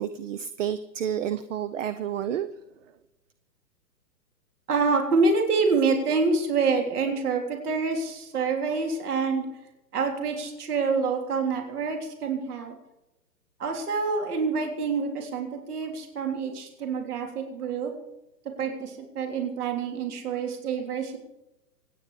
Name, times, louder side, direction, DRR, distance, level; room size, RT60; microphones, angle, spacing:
voice 1, 0.0-2.5, right 9 dB, 50° right, 13 dB, 0.8 m, -30 dB
voice 2, 4.7-9.5 9.9-12.8 13.6-17.9 18.6-21.2, right 4 dB, 65° right, 3 dB, 3.6 m, -27 dB
26.0 x 9.5 x 5.0 m, 0.93 s
hypercardioid pair, 140°, 50 cm